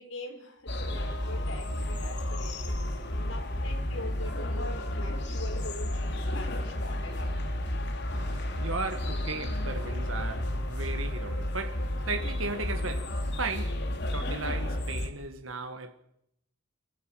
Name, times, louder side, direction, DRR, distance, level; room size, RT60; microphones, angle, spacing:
voice 1, 0.0-4.7 5.0-7.3, left 2 dB, 80° left, 5.1 m, -44 dB
sound 1, 0.7-15.1, left 1 dB, 60° left, 3.2 m, -32 dB
voice 2, 8.1-15.9, right 3 dB, 90° right, 1.7 m, -36 dB
24.5 x 16.0 x 9.2 m
head